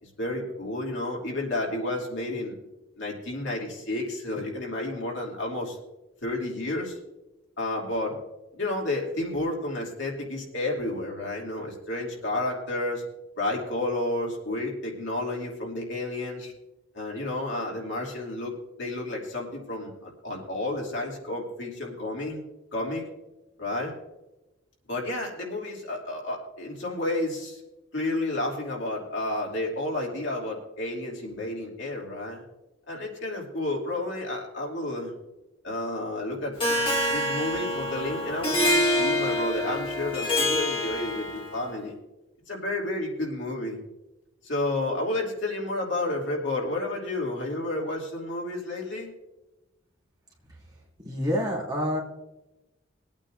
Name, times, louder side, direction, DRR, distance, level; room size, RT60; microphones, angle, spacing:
voice 1, 0.0-2.5 3.0-5.8 6.2-7.0 7.6-8.2 8.5-13.0 13.4-16.5 16.9-18.5 18.8-22.4 22.7-23.1 23.6-23.9 24.9-27.6 27.9-32.4 32.9-35.1 35.6-36.9 37.1-42.0 42.5-43.8 44.4-49.1, left 2 dB, 65° left, -2 dB, 2.8 m, -31 dB
Harp, 36.6-41.6, left 1 dB, 25° left, 2.0 m, -26 dB
voice 2, 51.0-52.0, equal, 20° right, -4 dB, 3.0 m, -27 dB
22.5 x 8.9 x 2.6 m, 1.0 s
head